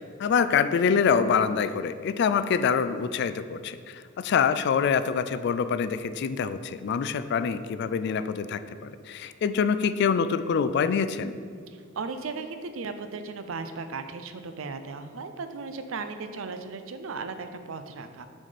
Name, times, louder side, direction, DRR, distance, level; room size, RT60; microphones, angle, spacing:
voice 1, 0.2-11.3, left 6 dB, 55° left, 12 dB, 0.3 m, -25 dB
voice 2, 11.7-18.3, right 4 dB, 75° right, 9 dB, 0.5 m, -36 dB
7.3 x 4.1 x 5.0 m, 2.2 s
head